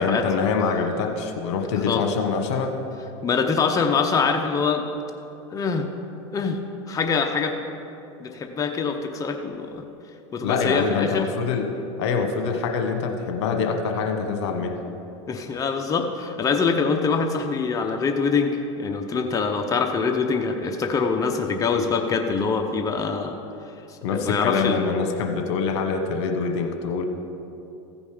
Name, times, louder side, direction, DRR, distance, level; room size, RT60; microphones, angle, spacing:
voice 1, 0.0-2.8 10.4-11.7 12.0-14.8 24.0-27.0, left 5 dB, 70° left, 4 dB, 1.1 m, -25 dB
voice 2, 3.2-4.8 5.5-5.8 6.3-6.6 6.9-7.5 8.2-9.8 10.3-11.3 15.3-23.4 23.9-24.8, left 5 dB, 25° left, 4 dB, 0.8 m, -24 dB
15.0 x 5.3 x 5.0 m, 2.8 s
supercardioid pair, 110°, 15 cm